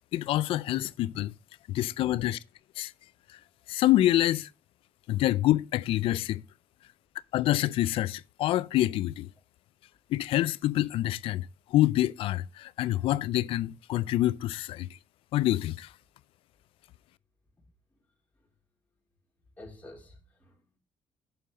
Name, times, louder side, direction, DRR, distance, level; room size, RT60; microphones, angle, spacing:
voice 1, 0.1-1.3 1.7-2.4 2.8-2.9 3.7-4.5 5.1-6.4 7.3-9.3 10.1-14.9 15.3-15.9, left 14 dB, 80° left, 0.4 m, -26 dB
voice 2, 19.6-20.8, left 1 dB, 20° left, 4.2 m, -49 dB
7.9 x 6.4 x 4.9 m
cardioid pair, 95°, 9 cm